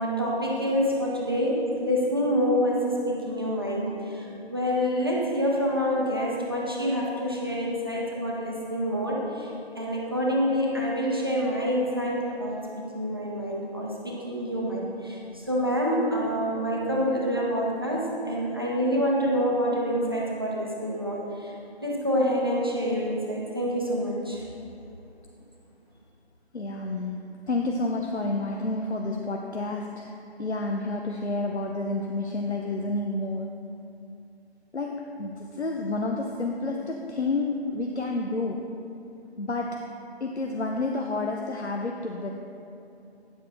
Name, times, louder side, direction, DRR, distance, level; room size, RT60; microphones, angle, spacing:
voice 1, 0.0-21.5 21.8-24.4, equal, 20° right, -4 dB, 0.8 m, -27 dB
voice 2, 26.5-33.5 34.7-38.8 39.4-42.3, left 2 dB, 85° left, 1 dB, 0.7 m, -30 dB
9.7 x 7.2 x 3.4 m, 2.8 s
figure-of-eight pair, 160°, 33 cm